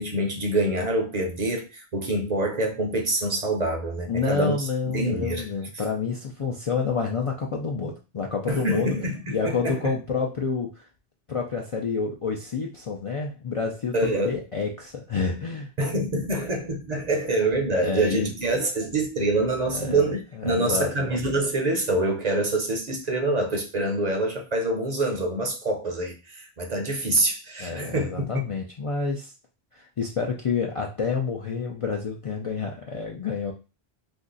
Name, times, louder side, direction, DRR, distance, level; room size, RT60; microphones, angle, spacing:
voice 1, 0.0-5.5 8.5-9.9 13.9-14.4 15.8-28.4, right 2 dB, 50° right, 0.6 m, -26 dB
voice 2, 4.1-8.9 9.3-10.9 11.3-15.7 17.8-18.3 19.7-20.0 20.3-20.9 27.6-29.3 29.7-33.5, left 5 dB, 50° left, 0.4 m, -28 dB
2.5 x 2.4 x 3.8 m
omnidirectional pair, 1.0 m